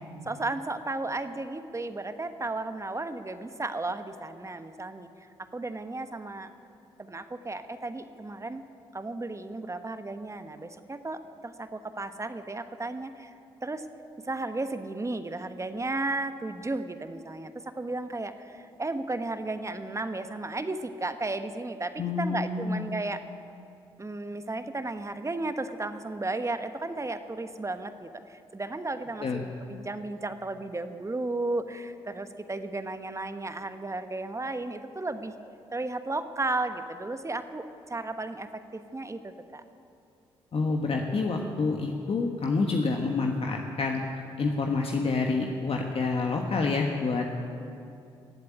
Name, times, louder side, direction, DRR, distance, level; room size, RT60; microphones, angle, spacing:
voice 1, 0.3-6.5 7.0-8.6 8.9-13.3 13.6-13.8 14.2-23.2 24.0-35.3 35.7-39.6, right 2 dB, 25° right, 9 dB, 1.1 m, -34 dB
voice 2, 22.0-22.9 29.2-29.4 40.5-44.0 44.4-47.3, left 4 dB, 50° left, 2 dB, 1.3 m, -28 dB
17.5 x 8.2 x 8.4 m, 2.6 s
hypercardioid pair, 45°, 13 cm